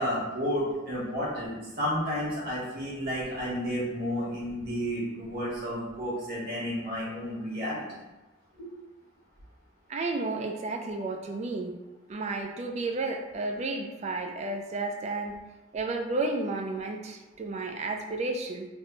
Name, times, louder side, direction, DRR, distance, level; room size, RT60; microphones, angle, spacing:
voice 1, 0.0-8.0 8.5-8.7, equal, 50° right, -7 dB, 1.4 m, -31 dB
voice 2, 9.9-11.7 12.1-15.3 15.7-18.7, right 3 dB, 35° right, 3 dB, 0.3 m, -32 dB
3.4 x 2.1 x 3.7 m, 1.1 s
head